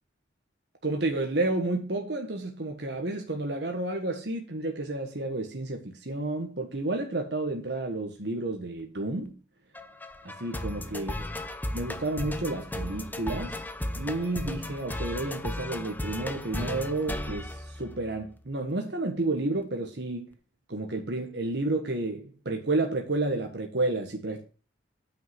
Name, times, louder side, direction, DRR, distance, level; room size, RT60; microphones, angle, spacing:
voice 1, 0.8-9.4 10.2-11.2 11.7-13.6 13.9-20.3 20.7-24.4, right 2 dB, 65° right, 1.4 m, -31 dB
sound 1, 9.7-18.3, left 1 dB, 10° left, 0.7 m, -35 dB
9.1 x 5.4 x 5.9 m
head